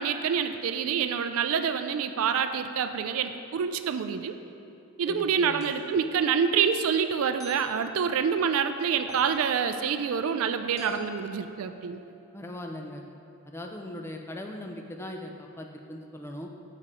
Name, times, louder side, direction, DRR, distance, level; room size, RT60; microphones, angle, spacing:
voice 1, 0.0-4.3 5.0-12.0, right 7 dB, 70° right, 9 dB, 0.3 m, -27 dB
voice 2, 5.1-5.6 12.3-13.0 13.5-16.5, left 1 dB, 10° left, 2 dB, 0.3 m, -39 dB
sound 1, 5.6-5.9 7.4-7.7 9.1-9.4 10.8-12.2, equal, 15° right, 1.4 m, -45 dB
6.9 x 4.9 x 4.2 m, 2.7 s
head